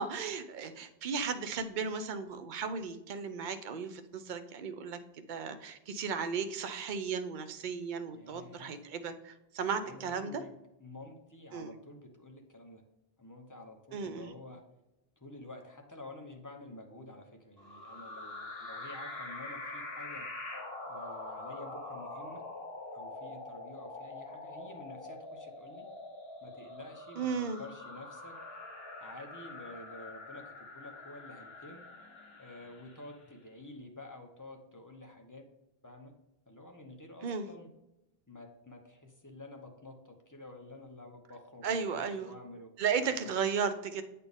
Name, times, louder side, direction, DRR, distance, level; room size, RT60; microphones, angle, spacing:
voice 1, 0.0-5.0 5.3-10.4 11.5-11.7 13.9-14.3 27.2-27.6 37.2-37.5 41.6-42.3 42.8-44.0, right 6 dB, 55° right, 9 dB, 0.7 m, -35 dB
voice 2, 8.1-8.8 9.8-10.5 10.8-12.8 13.2-14.6 15.2-20.3 20.9-22.4 22.9-25.9 26.4-28.3 29.0-31.9 32.4-35.4 35.8-36.1 36.5-37.7 38.3-43.2, left 2 dB, 20° left, 3 dB, 0.8 m, -50 dB
sound 1, 17.6-33.2, left 2 dB, 70° left, 1.7 m, -45 dB
8.4 x 4.2 x 3.5 m, 0.93 s
omnidirectional pair, 1.0 m